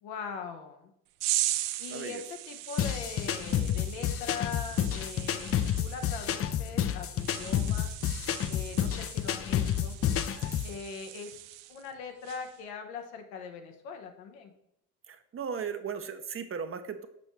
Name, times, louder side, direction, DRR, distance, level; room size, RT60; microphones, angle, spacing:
voice 1, 0.0-0.9 1.8-7.9 8.5-10.0 10.6-11.4 11.7-14.5, left 6 dB, 80° left, 5 dB, 1.0 m, -41 dB
sound 1, 1.2-11.9 12.2-12.6, right 15 dB, 70° right, 0.5 m, -38 dB
voice 2, 1.9-2.2 15.1-17.1, right 6 dB, 30° right, 9 dB, 0.6 m, -36 dB
sound 2, 2.8-10.7, left 10 dB, 35° left, 0.4 m, -30 dB
6.9 x 5.3 x 3.1 m, 0.76 s
hypercardioid pair, 65°, 43 cm